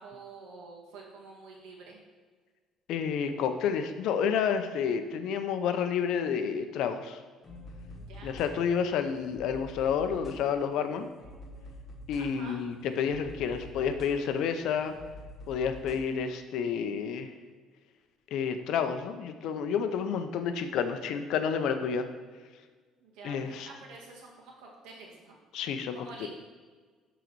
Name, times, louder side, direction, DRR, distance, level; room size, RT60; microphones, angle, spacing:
voice 1, 0.0-2.0 8.0-8.4 12.2-12.6 23.0-25.4 25.9-26.3, right 3 dB, 75° right, -1 dB, 2.0 m, -48 dB
voice 2, 2.9-7.2 8.2-11.1 12.1-14.9 15.5-17.3 18.3-22.1 23.2-23.7 25.5-26.3, left 7 dB, 60° left, 8 dB, 0.7 m, -30 dB
sound 1, 7.4-16.0, left 1 dB, 10° left, 1.5 m, -47 dB
11.0 x 4.0 x 4.6 m, 1.5 s
cardioid pair, 170°, 0 cm